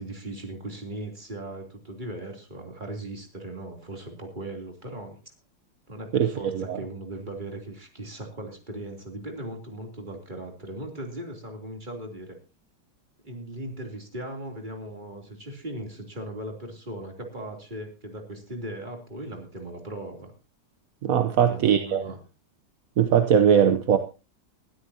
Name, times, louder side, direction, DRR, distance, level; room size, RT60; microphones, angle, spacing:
voice 1, 0.0-5.2 5.9-12.4 13.2-20.3 21.3-22.2, right 1 dB, 20° right, 3.2 m, -38 dB
voice 2, 6.1-6.8 21.0-22.0 23.0-24.0, right 8 dB, 55° right, 1.0 m, -20 dB
21.0 x 13.0 x 2.8 m
omnidirectional pair, 2.3 m